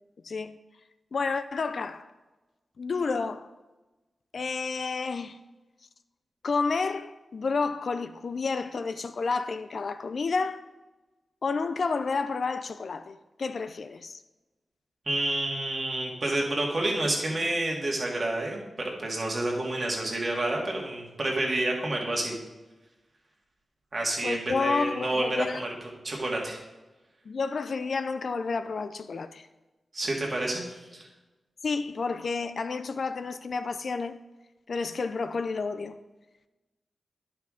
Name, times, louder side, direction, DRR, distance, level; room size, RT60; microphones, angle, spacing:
voice 1, 0.2-0.6 1.1-2.1 2.8-3.5 4.3-5.4 6.4-10.6 11.4-14.2 24.2-25.6 27.3-29.5 31.6-34.2 34.7-36.0, left 4 dB, 50° left, 0.3 m, -30 dB
voice 2, 15.1-22.4 23.9-25.7 26.0-26.6 29.9-31.0, right 2 dB, 35° right, 1.8 m, -29 dB
11.0 x 5.8 x 3.7 m
wide cardioid pair, 155°, 0 cm